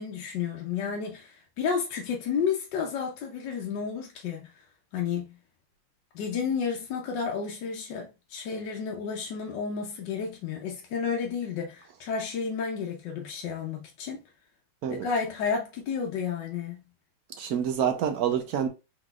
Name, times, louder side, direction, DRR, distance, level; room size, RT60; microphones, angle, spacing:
voice 1, 0.0-4.5 4.9-5.3 6.1-14.2 14.9-16.8, left 6 dB, 65° left, 1.3 m, -31 dB
voice 2, 17.4-18.7, right 8 dB, 75° right, 0.8 m, -27 dB
4.6 x 3.8 x 2.4 m
omnidirectional pair, 2.3 m